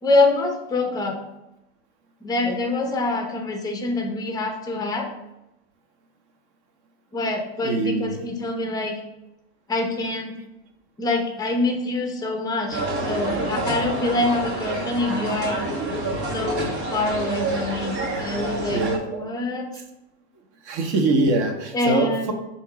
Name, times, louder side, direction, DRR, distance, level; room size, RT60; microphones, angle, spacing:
voice 1, 0.0-1.2 2.2-5.1 7.1-9.0 9.7-10.3 11.0-15.6 16.3-19.7 21.7-22.3, left 2 dB, 10° left, 3 dB, 0.5 m, -25 dB
voice 2, 7.6-8.2 18.7-19.3 20.6-22.3, right 3 dB, 45° right, 5 dB, 0.8 m, -23 dB
sound 1, 12.7-19.0, right 2 dB, 80° right, 1.3 m, -28 dB
3.7 x 2.9 x 4.7 m, 0.95 s
supercardioid pair, 140°, 33 cm